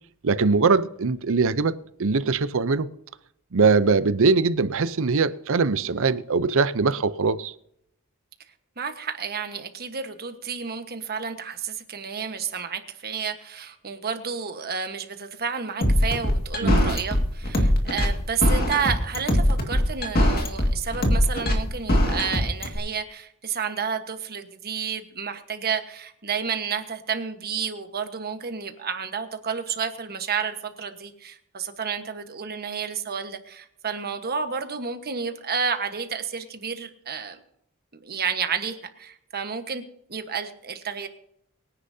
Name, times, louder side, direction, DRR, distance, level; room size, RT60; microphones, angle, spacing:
voice 1, 0.2-1.7 2.0-2.9 3.5-7.5 16.6-17.0, right 4 dB, 60° right, 0.6 m, -22 dB
voice 2, 8.8-37.4 37.9-39.8 40.1-41.1, right 6 dB, 45° right, 1.3 m, -31 dB
sound 1, 15.8-22.8, left 1 dB, 45° left, 2.1 m, -21 dB
24.0 x 10.0 x 2.8 m
head